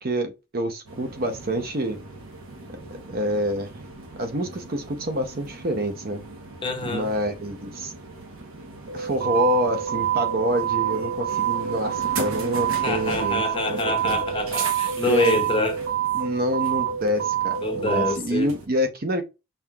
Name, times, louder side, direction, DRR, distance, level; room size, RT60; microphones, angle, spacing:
voice 1, 0.0-2.0 2.9-3.8 4.2-6.2 6.8-7.9 8.9-13.4 13.7-14.2 15.1-15.4 16.1-19.2, equal, 45° right, 0.7 m, -27 dB
sound 1, 0.9-18.7, right 8 dB, 70° right, 0.9 m, -29 dB
voice 2, 6.6-7.1 12.8-15.8 17.6-18.5, left 2 dB, 25° left, 0.6 m, -26 dB
5.5 x 2.8 x 2.3 m
head